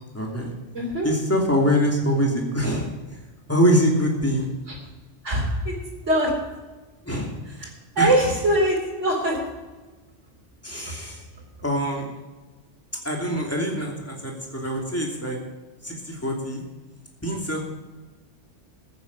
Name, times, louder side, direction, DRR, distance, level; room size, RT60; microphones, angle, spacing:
voice 1, 0.1-0.5 1.0-2.9 3.5-4.5 7.1-7.4 8.0-8.1 10.6-11.2 11.6-12.1 13.0-15.4 15.8-16.6 17.2-17.6, equal, 10° left, 0 dB, 2.8 m, -24 dB
voice 2, 0.7-1.1 4.7-4.8 5.2-5.7 6.0-6.3 7.6-9.4 10.9-11.0, right 1 dB, 75° right, -3 dB, 3.5 m, -23 dB
14.5 x 9.5 x 5.4 m, 1.2 s
omnidirectional pair, 1.2 m